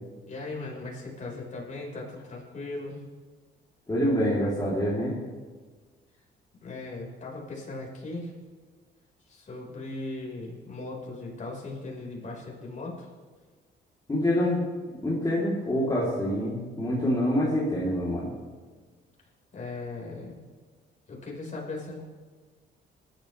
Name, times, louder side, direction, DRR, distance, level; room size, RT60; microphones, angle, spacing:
voice 1, 0.3-3.0 6.6-8.3 9.3-13.1 19.5-20.4 21.1-22.0, left 2 dB, 40° left, -3 dB, 5.3 m, -38 dB
voice 2, 3.9-5.1 14.1-14.6 15.0-18.3, equal, 20° left, -7 dB, 3.7 m, -26 dB
20.0 x 12.0 x 3.5 m, 1.4 s
cardioid pair, 90°, 20 cm